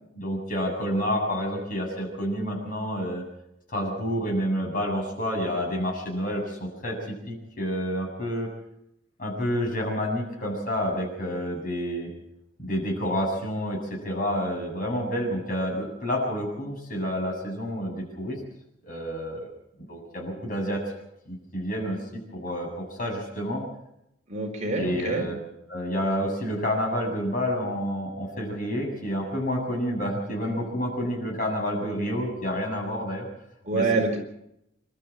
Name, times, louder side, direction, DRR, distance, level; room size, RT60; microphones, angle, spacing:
voice 1, 0.2-3.2 3.7-8.5 9.2-12.1 12.6-18.4 18.8-19.5 19.9-20.8 21.3-22.0 22.3-23.6 24.8-25.4 25.7-33.3 33.7-34.0, equal, 45° left, 1 dB, 7.4 m, -29 dB
voice 2, 24.3-25.3 33.6-34.2, right 3 dB, 40° right, 2 dB, 4.5 m, -26 dB
27.0 x 13.0 x 7.5 m, 0.80 s
head